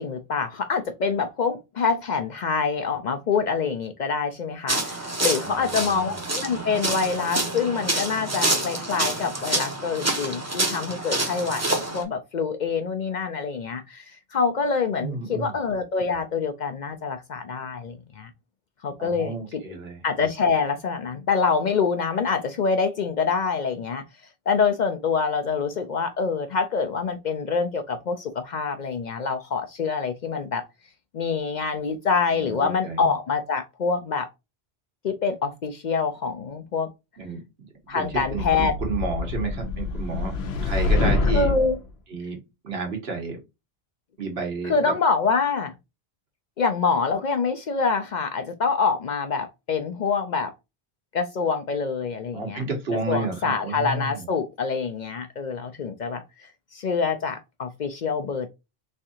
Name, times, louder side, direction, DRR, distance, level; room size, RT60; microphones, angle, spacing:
voice 1, 0.0-18.3 18.8-19.6 20.0-24.0 24.5-30.6 31.1-34.3 35.0-36.9 37.9-38.7 41.2-41.8 44.6-45.7 46.6-50.5 51.1-52.6 53.1-56.2 56.7-58.5, left 5 dB, 55° left, 0.6 m, -26 dB
sound 1, 4.7-12.0, right 2 dB, 20° right, 0.7 m, -27 dB
voice 2, 5.4-6.2 15.0-15.6 19.0-20.0 32.3-33.1 37.2-40.3 40.6-41.5 42.1-43.4 44.2-44.9 52.3-54.3, right 4 dB, 75° right, 1.4 m, -32 dB
sound 2, 38.1-41.8, left 3 dB, 75° left, 0.9 m, -25 dB
3.6 x 3.2 x 2.7 m
omnidirectional pair, 1.1 m